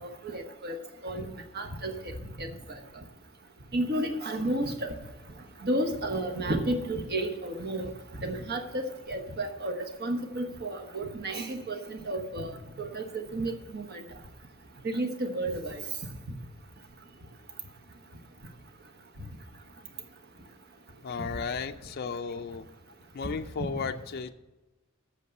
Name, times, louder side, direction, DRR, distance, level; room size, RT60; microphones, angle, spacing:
voice 1, 0.0-0.8 1.0-1.3 1.5-1.9 2.4-2.5 3.7-4.9 5.6-7.9 8.2-9.7 10.0-13.0 13.3-14.0 14.8-15.8, right 1 dB, 50° right, 6 dB, 1.2 m, -32 dB
voice 2, 21.0-22.7 23.1-24.3, left 5 dB, 50° left, 6 dB, 0.4 m, -34 dB
8.3 x 6.6 x 7.8 m, 1.0 s
head